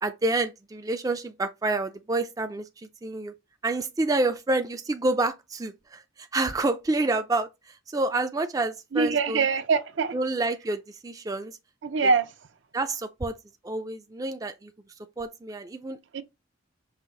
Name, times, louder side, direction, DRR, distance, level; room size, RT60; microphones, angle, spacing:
voice 1, 0.0-3.3 3.6-9.4 10.1-11.6 12.7-13.4 13.6-14.7 15.2-16.0, right 2 dB, 20° right, 0.3 m, -28 dB
voice 2, 8.9-10.2 11.8-12.3 16.1-16.2, right 4 dB, 70° right, 0.6 m, -23 dB
5.6 x 2.5 x 3.7 m
head